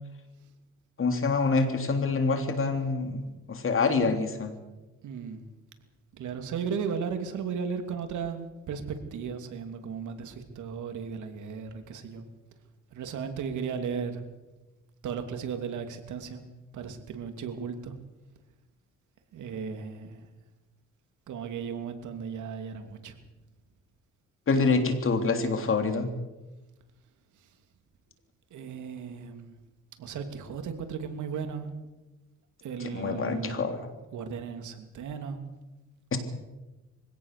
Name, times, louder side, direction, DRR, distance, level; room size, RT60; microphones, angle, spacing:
voice 1, 1.0-4.5 24.5-26.1 32.8-33.9 36.1-36.2, left 4 dB, 45° left, 6 dB, 3.3 m, -26 dB
voice 2, 5.0-5.5 6.1-12.3 12.9-14.2 15.0-16.4 16.7-17.9 19.3-20.3 21.3-23.2 28.5-29.6 30.0-31.7 32.6-33.7 34.1-35.4, right 6 dB, 75° right, 7 dB, 2.8 m, -35 dB
24.0 x 17.0 x 6.8 m, 1.1 s
cardioid pair, 90°, 30 cm